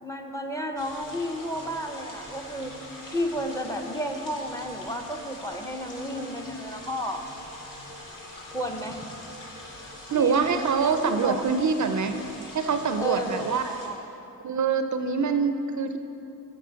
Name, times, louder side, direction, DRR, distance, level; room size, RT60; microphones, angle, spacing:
voice 1, 0.0-2.7 3.1-7.2 8.5-9.1 10.2-10.4 10.8-11.5 13.0-14.0, equal, 10° left, 4 dB, 0.7 m, -32 dB
sound 1, 0.8-13.9, left 1 dB, 65° left, 1.6 m, -43 dB
voice 2, 10.1-12.1 12.5-13.6 14.4-16.0, right 5 dB, 55° right, 8 dB, 0.5 m, -24 dB
7.6 x 5.2 x 6.8 m, 2.9 s
cardioid pair, 65°, 35 cm